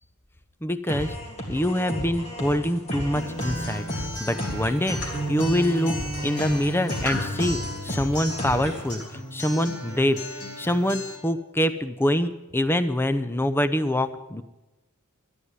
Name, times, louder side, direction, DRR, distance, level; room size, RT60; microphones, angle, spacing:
voice 1, 0.6-1.2 1.5-5.0 5.3-6.0 6.2-10.2 10.6-14.4, left 1 dB, 10° left, 12 dB, 0.7 m, -25 dB
sound 1, 0.9-8.9, equal, 30° left, 2.7 m, -34 dB
Acoustic guitar, 3.2-11.1, equal, 55° left, 5.1 m, -33 dB
13.0 x 9.6 x 9.5 m, 1.1 s
head